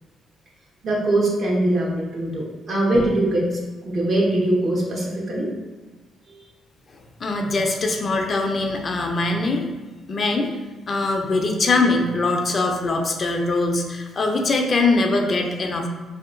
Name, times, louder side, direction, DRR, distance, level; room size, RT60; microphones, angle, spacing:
voice 1, 0.8-3.6 3.8-5.5 6.3-6.4, right 1 dB, 55° right, -3 dB, 1.1 m, -22 dB
voice 2, 7.2-9.7 10.1-10.5 10.9-15.9, left 3 dB, 45° left, 3 dB, 0.5 m, -22 dB
4.5 x 2.8 x 2.5 m, 1.3 s
cardioid pair, 90°, 0 cm